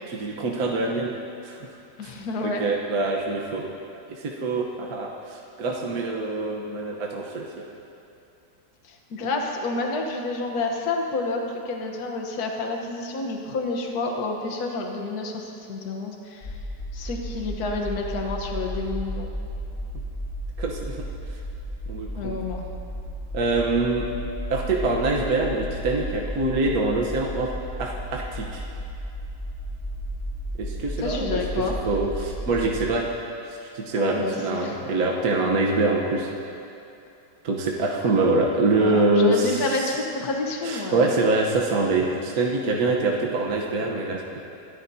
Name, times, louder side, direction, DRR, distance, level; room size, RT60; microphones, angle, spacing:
voice 1, 0.1-1.2 1.4-1.6 2.0-2.1 2.4-3.7 4.1-7.6 20.6-21.3 21.9-22.4 23.3-24.1 24.5-27.5 27.8-28.6 30.6-33.1 33.4-36.3 37.4-40.0 40.6-44.4, right 2 dB, 60° right, -1 dB, 1.5 m, -25 dB
voice 2, 2.0-2.7 8.8-16.6 16.9-19.3 22.2-22.7 31.0-31.8 34.0-34.8 38.8-41.1, left 3 dB, 65° left, 1 dB, 1.7 m, -29 dB
sound 1, 16.4-32.8, equal, 40° left, 4.5 m, -34 dB
26.0 x 14.0 x 2.8 m, 2.7 s
omnidirectional pair, 1.8 m